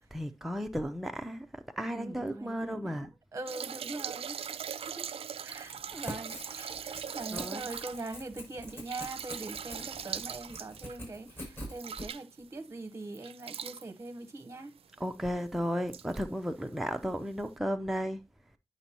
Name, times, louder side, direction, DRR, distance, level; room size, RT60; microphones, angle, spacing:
voice 1, 0.1-3.1 5.9-6.1 7.3-7.6 15.0-18.2, equal, ahead, 0.5 m, -34 dB
voice 2, 1.9-4.4 5.0-5.1 5.4-14.7, right 2 dB, 25° right, 0.9 m, -42 dB
sound 1, 3.5-12.6 13.1-13.9 14.8-14.9 15.2-15.3 15.9-16.2 17.3-17.4, right 8 dB, 60° right, 0.4 m, -41 dB
Crackle / Tearing, 5.7-12.1, equal, 20° left, 5.6 m, -45 dB
9.5 x 6.1 x 2.8 m
wide cardioid pair, 115°, 11 cm